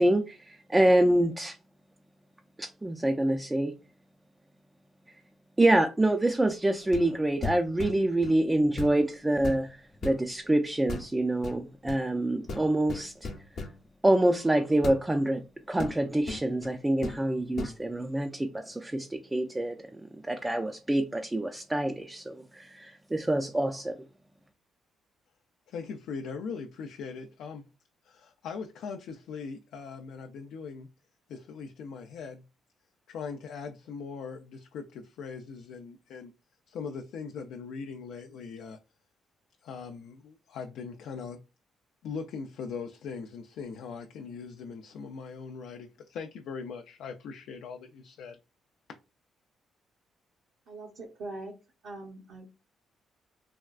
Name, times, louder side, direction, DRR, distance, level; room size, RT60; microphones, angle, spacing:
voice 1, 0.0-1.6 2.6-3.7 5.6-13.3 14.0-24.0, right 1 dB, 15° right, 0.3 m, -26 dB
sound 1, 6.9-7.1 7.4-8.4 8.8-9.0 9.4-10.2 10.9-11.1 11.4-12.0 12.5-13.8 14.8-15.0 15.8-16.7 17.0-17.2 17.6-17.8, left 3 dB, 65° left, 0.7 m, -37 dB
voice 2, 25.7-27.7 28.0-30.9 31.3-32.4 33.1-36.3 36.7-38.8 39.6-41.4 42.0-48.4, left 5 dB, 80° left, 0.3 m, -40 dB
voice 3, 50.7-51.5 51.8-52.5, right 2 dB, 75° right, 0.8 m, -41 dB
3.4 x 2.2 x 2.3 m
cardioid pair, 90°, 0 cm